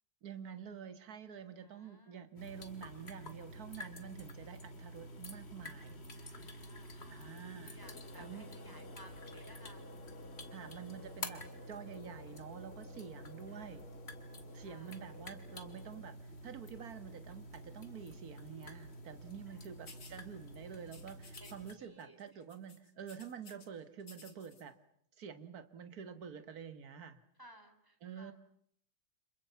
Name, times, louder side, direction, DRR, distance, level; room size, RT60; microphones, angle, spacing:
voice 1, 0.2-6.0 7.1-7.8 8.1-8.5 10.5-13.9 14.5-16.2 16.4-24.8 25.2-27.2 28.0-28.3, right 7 dB, 50° right, 11 dB, 2.0 m, -48 dB
voice 2, 1.6-2.2 6.1-9.9 13.5-13.7 14.5-15.0 19.5-20.0 21.4-22.4 27.4-28.3, right 1 dB, 10° right, 5 dB, 3.8 m, -60 dB
sound 1, 2.4-21.7, equal, 30° left, 2.4 m, -49 dB
sound 2, 7.8-16.0, left 4 dB, 85° left, 2.8 m, -56 dB
sound 3, 19.9-20.2 20.9-21.7 22.0-22.2 22.5-23.7 24.0-24.6, left 4 dB, 55° left, 3.5 m, -56 dB
30.0 x 26.5 x 7.1 m, 0.67 s
omnidirectional pair, 2.2 m